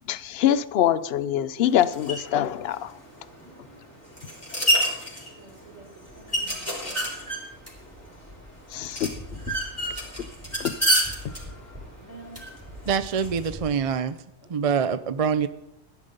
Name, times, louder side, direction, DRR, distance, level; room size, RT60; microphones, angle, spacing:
voice 1, 0.1-2.9 8.7-9.1 10.2-10.3 10.6-10.7, left 10 dB, 60° left, 0.8 m, -24 dB
sound 1, 1.6-13.5, equal, 10° left, 3.7 m, -30 dB
voice 2, 3.4-3.9 5.3-7.2 12.0-12.4 14.4-14.5, right 2 dB, 85° right, 4.3 m, -49 dB
sound 2, 6.0-13.9, equal, 10° right, 3.8 m, -45 dB
voice 3, 12.9-14.2 14.5-15.5, right 6 dB, 45° right, 0.5 m, -25 dB
13.5 x 10.5 x 5.3 m
omnidirectional pair, 1.3 m